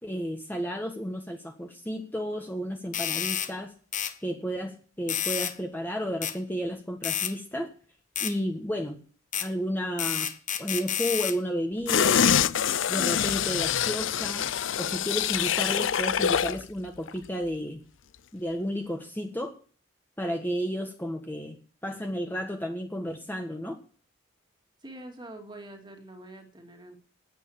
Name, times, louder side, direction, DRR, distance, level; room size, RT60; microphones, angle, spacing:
voice 1, 0.0-3.7 4.2-7.7 8.2-9.0 9.4-10.3 10.6-12.3 12.9-14.5 14.8-17.8 18.3-19.5 20.2-21.5 21.8-23.8, equal, 10° left, 2 dB, 1.5 m, -32 dB
sound 1, 2.9-3.5 3.9-4.1 5.1-5.5 6.2-6.4 7.0-7.3 8.2-8.3 9.3-9.5 10.0-11.4, left 9 dB, 40° left, 1.1 m, -29 dB
sound 2, 11.9-16.6 17.0-17.1, left 8 dB, 65° left, 0.6 m, -25 dB
voice 2, 24.8-26.9, right 1 dB, 25° right, 4 dB, 2.4 m, -45 dB
9.2 x 9.1 x 8.7 m, 0.41 s
head